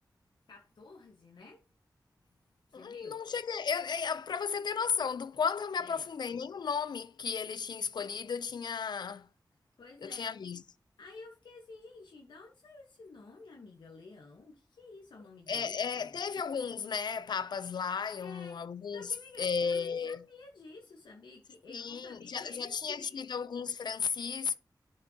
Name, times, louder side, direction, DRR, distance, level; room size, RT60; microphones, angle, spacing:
voice 1, 0.5-1.6 2.7-3.2 5.8-6.1 9.8-10.3 11.0-16.2 18.2-18.6 18.9-23.3, left 3 dB, 90° left, 1.1 m, -52 dB
voice 2, 2.7-9.3 10.0-10.6 15.5-19.1 19.4-20.2 21.7-24.6, left 6 dB, 70° left, 0.4 m, -34 dB
11.0 x 5.3 x 2.8 m
wide cardioid pair, 90°, 8 cm